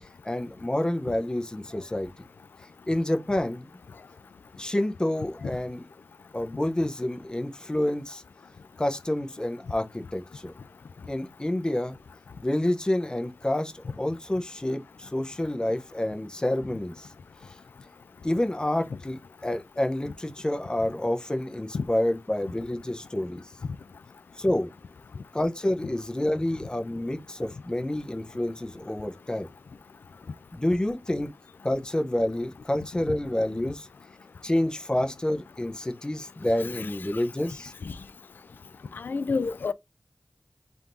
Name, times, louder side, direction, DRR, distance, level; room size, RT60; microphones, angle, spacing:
voice 1, 0.2-2.1 2.9-3.7 4.6-5.8 6.3-8.2 8.8-10.5 11.1-11.9 12.4-17.1 18.2-23.4 24.4-24.7 25.3-29.5 30.5-31.3 31.6-33.9 34.4-37.7, left 1 dB, 25° left, 0.7 m, -28 dB
voice 2, 39.0-39.7, left 4 dB, 85° left, 0.3 m, -28 dB
3.6 x 2.6 x 4.4 m
wide cardioid pair, 55°, 3 cm